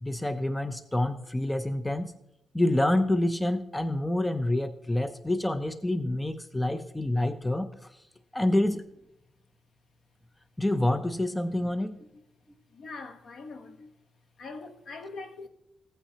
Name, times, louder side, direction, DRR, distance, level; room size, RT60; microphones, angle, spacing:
voice 1, 0.0-2.1 2.5-7.9 8.3-8.8 10.6-12.0, left 1 dB, 10° left, 0.5 m, -27 dB
voice 2, 12.7-13.9 14.4-15.5, left 3 dB, 65° left, 1.0 m, -42 dB
15.5 x 8.7 x 2.8 m
cardioid pair, 110°, 0 cm